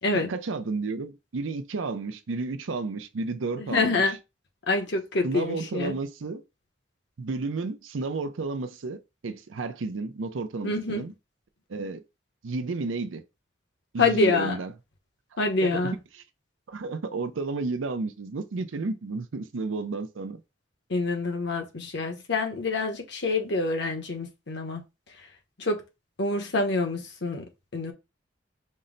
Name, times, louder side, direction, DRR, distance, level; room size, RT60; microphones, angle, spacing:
voice 1, 0.1-4.0 5.2-6.4 7.2-11.1 11.7-12.0 12.4-13.2 13.9-14.7 15.3-15.7 16.7-20.4, right 3 dB, 90° right, 0.6 m, -32 dB
voice 2, 3.6-4.2 4.7-6.0 10.6-11.0 14.0-14.6 15.4-16.0 20.9-24.8 25.6-25.8 26.2-27.9, left 3 dB, 60° left, 1.0 m, -26 dB
5.3 x 2.1 x 3.8 m
head